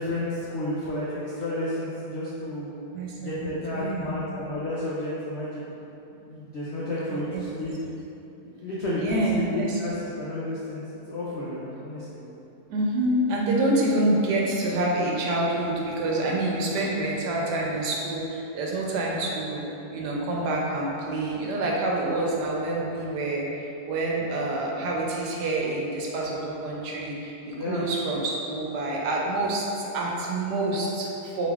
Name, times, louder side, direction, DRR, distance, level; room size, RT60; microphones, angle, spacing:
voice 1, 0.0-2.7 3.2-5.7 6.3-7.7 8.4-12.2 27.5-27.8, left 1 dB, 80° left, -8 dB, 0.6 m, -31 dB
voice 2, 2.9-4.2 7.1-7.5 9.0-9.8 12.7-31.5, right 2 dB, 85° right, -2 dB, 1.2 m, -27 dB
4.1 x 3.3 x 2.4 m, 2.9 s
omnidirectional pair, 1.8 m